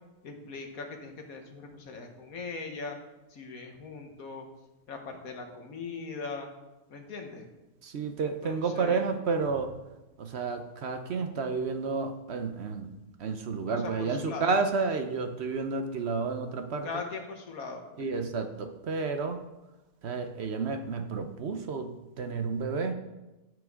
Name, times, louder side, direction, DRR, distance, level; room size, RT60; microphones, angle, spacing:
voice 1, 0.2-3.0 3.3-4.5 4.9-6.5 6.9-7.5 8.2-9.1 13.7-14.5 16.8-18.1, left 4 dB, 65° left, 4 dB, 1.7 m, -40 dB
voice 2, 7.8-9.7 10.2-12.9 13.2-16.9 18.0-19.4 20.0-22.9, right 4 dB, 55° right, 7 dB, 0.8 m, -31 dB
13.5 x 6.3 x 3.7 m, 1.0 s
omnidirectional pair, 1.6 m